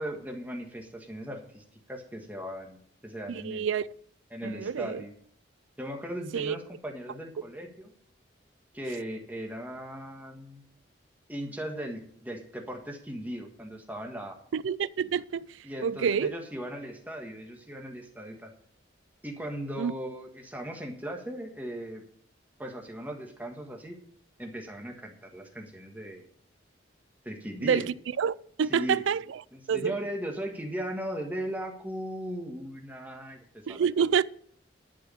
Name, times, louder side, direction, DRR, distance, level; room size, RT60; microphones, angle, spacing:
voice 1, 0.0-3.7 4.3-5.1 5.8-7.9 8.7-10.6 11.3-14.4 15.6-18.5 19.2-22.0 22.6-24.0 24.4-26.2 27.2-27.9 28.7-29.1 29.5-33.9, equal, 10° right, 1.5 m, -38 dB
voice 2, 3.3-3.9 4.4-5.0 6.3-6.6 14.5-15.5 15.8-16.3 19.8-19.9 27.6-29.4 29.7-30.0 33.7-34.2, right 7 dB, 85° right, 0.4 m, -28 dB
11.0 x 4.9 x 8.5 m
head